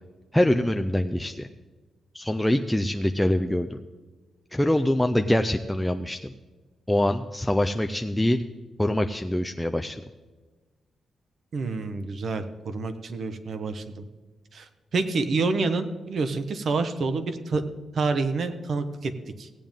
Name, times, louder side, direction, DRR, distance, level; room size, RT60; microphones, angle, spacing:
voice 1, 0.3-1.5 2.1-3.8 4.5-6.3 6.9-8.4 8.8-10.0, left 1 dB, 5° left, 5 dB, 0.4 m, -24 dB
voice 2, 11.5-14.0 14.5-17.6 17.9-19.1 19.4-19.5, right 3 dB, 50° right, 10 dB, 0.9 m, -28 dB
16.5 x 9.0 x 3.6 m, 1.3 s
wide cardioid pair, 150°, 0 cm